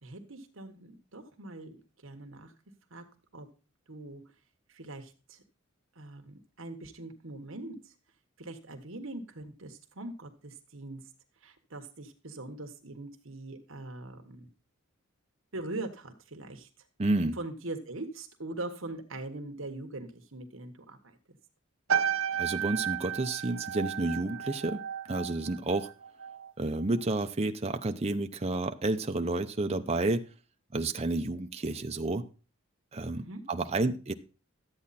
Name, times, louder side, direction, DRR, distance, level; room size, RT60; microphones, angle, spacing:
voice 1, 0.0-2.5 2.9-3.0 3.3-3.5 3.9-4.2 4.7-5.4 5.9-7.9 8.4-11.0 11.4-14.5 15.5-16.7 17.3-21.4 33.2-33.4, right 2 dB, 65° right, 5 dB, 1.4 m, -42 dB
voice 2, 17.0-17.4 22.3-25.9 26.6-30.2 30.7-32.2 32.9-34.1, right 2 dB, 30° right, 6 dB, 0.7 m, -30 dB
sound 1, 21.9-26.5 26.8-27.2, right 8 dB, 85° right, 1.4 m, -33 dB
12.5 x 8.6 x 4.2 m, 0.35 s
head